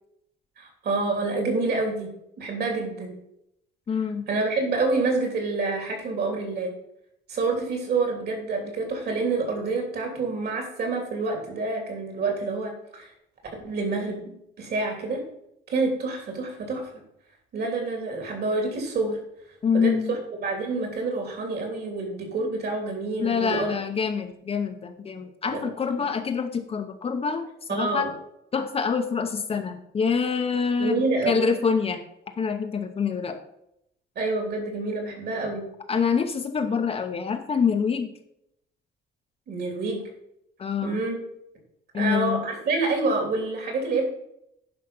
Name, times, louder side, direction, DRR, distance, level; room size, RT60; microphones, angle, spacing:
voice 1, 0.6-2.1 2.4-3.2 4.3-6.7 7.3-13.1 13.6-15.2 15.7-16.9 17.5-19.2 19.7-23.8 25.5-25.6 27.7-28.1 30.8-31.4 34.1-35.7 39.5-40.0 40.8-41.2 41.9-44.1, right 3 dB, 55° right, 3 dB, 3.1 m, -27 dB
voice 2, 3.9-4.3 19.6-20.2 23.2-28.1 28.5-32.0 32.4-33.4 35.9-38.1 40.6-41.0 41.9-42.4, left 6 dB, 30° left, 6 dB, 0.8 m, -26 dB
10.5 x 5.6 x 5.4 m, 0.78 s
cardioid pair, 170°, 19 cm